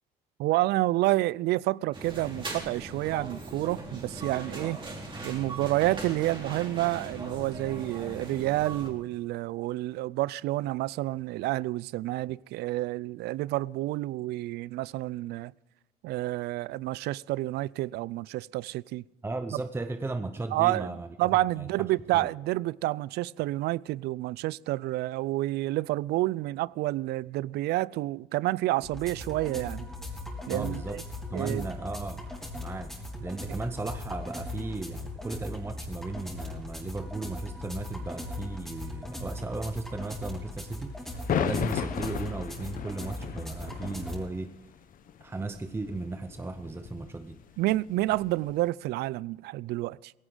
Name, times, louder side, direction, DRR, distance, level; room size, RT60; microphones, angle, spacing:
voice 1, 0.4-4.8 5.2-15.5 16.0-19.0 19.5-19.6 20.5-29.9 30.5-31.0 31.3-31.7 47.6-50.1, right 17 dB, 75° right, 0.4 m, -29 dB
sound 1, 1.9-8.9, right 2 dB, 30° right, 3.8 m, -39 dB
voice 2, 19.2-21.7 22.1-22.3 30.5-31.0 31.3-32.3 32.6-32.9 33.2-44.6 45.2-47.4, right 3 dB, 15° right, 0.7 m, -36 dB
sound 2, 28.8-44.2, left 2 dB, ahead, 3.8 m, -39 dB
sound 3, 41.1-48.6, left 9 dB, 55° left, 0.8 m, -36 dB
17.5 x 16.0 x 3.9 m
cardioid pair, 110°, 17 cm